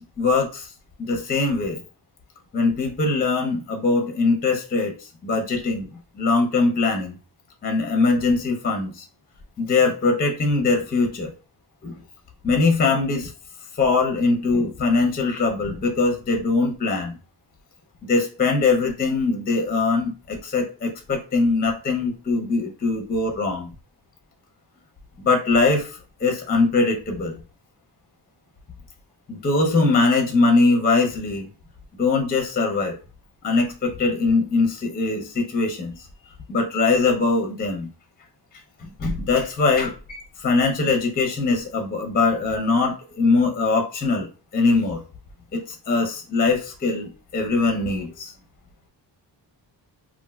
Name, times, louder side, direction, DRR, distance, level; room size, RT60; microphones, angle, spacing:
voice 1, 0.2-0.7 1.0-1.8 2.5-5.9 6.2-7.1 7.6-9.0 9.6-11.3 11.8-11.9 12.4-13.3 13.8-17.1 18.1-23.7 25.2-27.4 29.3-31.5 32.0-33.0 33.4-36.0 36.5-37.9 38.8-44.3 44.5-45.0 45.5-48.3, left 3 dB, 25° left, 2 dB, 0.5 m, -22 dB
3.2 x 2.4 x 2.2 m, 0.34 s
wide cardioid pair, 170°, 42 cm